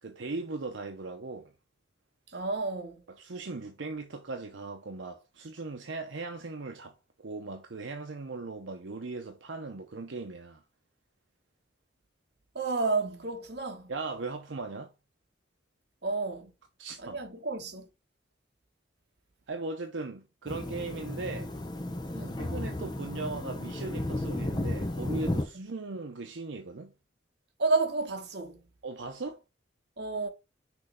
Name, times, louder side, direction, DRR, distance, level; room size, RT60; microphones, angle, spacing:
voice 1, 0.0-1.5 3.1-7.0 7.2-10.6 13.9-14.9 16.8-17.2 19.5-21.5 22.4-26.9 28.8-29.4, right 3 dB, 85° right, 0.7 m, -38 dB
voice 2, 2.3-3.0 12.5-13.9 16.0-16.5 17.0-17.9 22.1-22.5 25.5-25.6 27.6-28.6 30.0-30.3, right 3 dB, 65° right, 1.4 m, -31 dB
sound 1, 20.5-25.4, left 1 dB, 25° left, 0.8 m, -33 dB
6.2 x 3.2 x 5.0 m
head